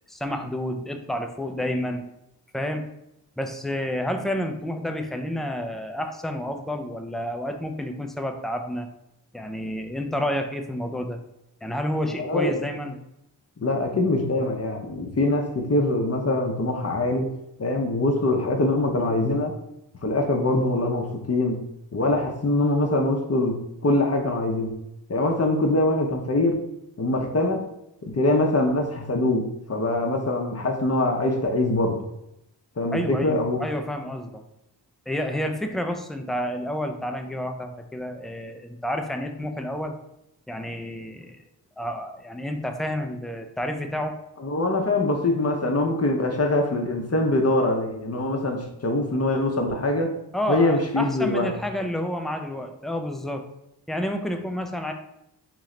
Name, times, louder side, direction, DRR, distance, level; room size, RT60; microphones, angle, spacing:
voice 1, 0.1-2.0 2.5-2.9 3.4-8.9 9.3-11.2 11.6-12.9 32.9-34.4 35.1-40.0 40.5-41.4 41.8-44.1 50.3-53.4 53.9-54.9, equal, ahead, 5 dB, 0.3 m, -30 dB
voice 2, 12.2-12.5 13.6-17.3 17.6-19.6 20.0-21.6 21.9-23.6 23.8-24.7 25.1-26.6 27.0-27.7 28.0-32.0 32.8-33.6 44.4-50.1 50.5-51.5, left 2 dB, 35° left, 2 dB, 0.6 m, -23 dB
3.1 x 3.0 x 3.7 m, 0.83 s
wide cardioid pair, 85°, 43 cm